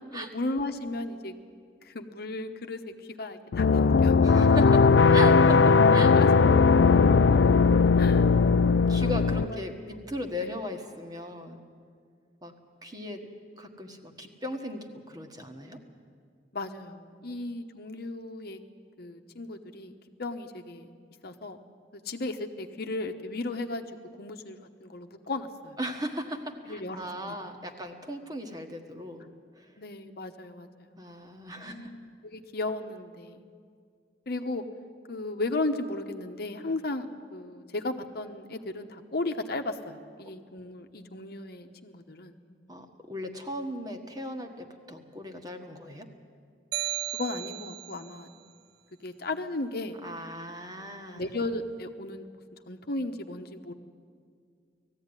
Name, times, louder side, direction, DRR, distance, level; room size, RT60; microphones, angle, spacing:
voice 1, 0.1-1.3 1.8-4.3 5.9-6.5 8.0-8.3 9.0-9.1 9.4-9.6 10.4-10.5 16.5-18.6 19.0-20.9 21.2-21.6 21.9-23.8 24.2-25.8 26.7-27.4 29.8-30.9 31.5-33.4 34.3-34.6 35.1-42.3 47.1-48.3 49.0-50.0 51.1-52.3 52.7-53.7, left 2 dB, 60° left, 6 dB, 1.1 m, -35 dB
sound 1, 3.5-9.5, left 4 dB, 75° left, 0.4 m, -19 dB
voice 2, 4.2-6.1 8.9-11.6 12.4-12.5 12.8-13.3 13.6-15.8 25.8-29.2 29.6-29.7 30.9-31.9 42.7-46.1 50.0-51.2, equal, 25° right, 4 dB, 1.6 m, -37 dB
sound 2, 46.7-48.1, right 14 dB, 70° right, 0.8 m, -34 dB
19.0 x 14.5 x 9.8 m, 2.1 s
head